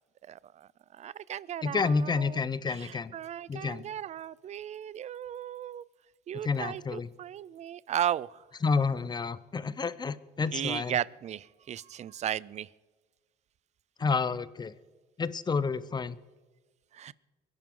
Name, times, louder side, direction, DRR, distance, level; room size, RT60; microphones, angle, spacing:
voice 1, 0.3-2.4 2.7-5.8 6.3-8.4 10.5-12.7 16.9-17.1, right 10 dB, 45° right, 21 dB, 0.5 m, -36 dB
voice 2, 1.6-3.1 3.5-3.9 6.4-7.1 8.6-11.0 14.0-14.7 15.2-16.2, left 4 dB, 25° left, 16 dB, 0.7 m, -29 dB
24.0 x 10.5 x 3.8 m, 1.3 s
cardioid pair, 110°, 17 cm